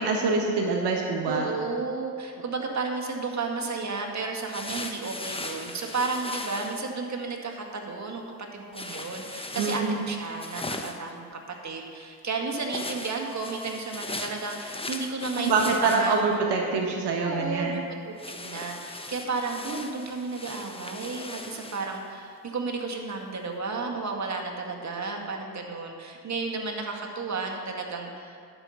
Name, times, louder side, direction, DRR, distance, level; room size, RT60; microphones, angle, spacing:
voice 1, 0.0-1.5 9.5-10.0 15.3-17.8, right 4 dB, 70° right, 1 dB, 1.2 m, -25 dB
voice 2, 1.3-8.2 8.5-16.1 17.2-28.5, right 3 dB, 40° right, 2 dB, 1.9 m, -33 dB
sound 1, 4.5-6.8 8.7-11.1 12.7-16.3 18.2-22.0, left 2 dB, 15° left, 1.0 m, -38 dB
11.0 x 5.7 x 7.1 m, 2.2 s
hypercardioid pair, 45°, 42 cm